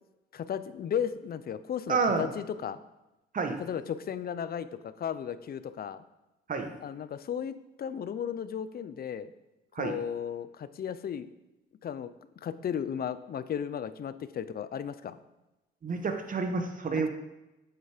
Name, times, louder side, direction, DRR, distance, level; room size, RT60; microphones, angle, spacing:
voice 1, 0.3-2.8 3.6-6.0 6.8-9.3 9.8-11.3 11.8-12.1 12.4-15.2, left 8 dB, 50° left, 14 dB, 0.6 m, -35 dB
voice 2, 1.9-2.3 3.3-3.6 6.5-6.7 9.7-10.0 15.8-17.1, right 4 dB, 40° right, 6 dB, 1.3 m, -29 dB
8.1 x 7.9 x 5.1 m, 0.98 s
cardioid pair, 90°, 20 cm